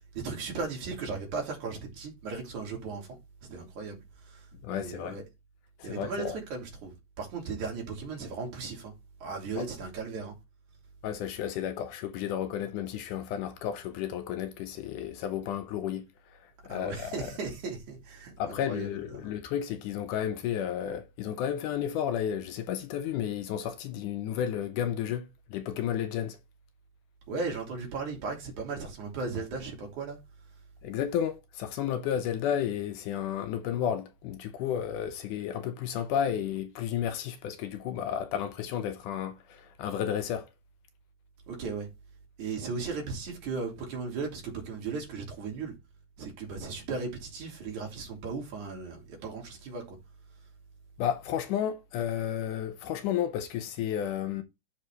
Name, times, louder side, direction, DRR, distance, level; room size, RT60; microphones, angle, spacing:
voice 1, 0.1-3.1 3.5-4.0 4.3-4.4 4.7-5.2 5.8-8.9 9.2-10.3 16.7-18.9 27.3-30.2 41.5-41.9 42.4-45.7 46.2-50.0, right 4 dB, 65° right, 3.7 m, -36 dB
voice 2, 4.6-5.2 5.8-6.4 9.6-9.7 11.0-17.3 18.4-26.4 30.8-40.5 51.0-54.4, left 9 dB, 80° left, 2.1 m, -32 dB
12.5 x 4.3 x 3.3 m
omnidirectional pair, 3.8 m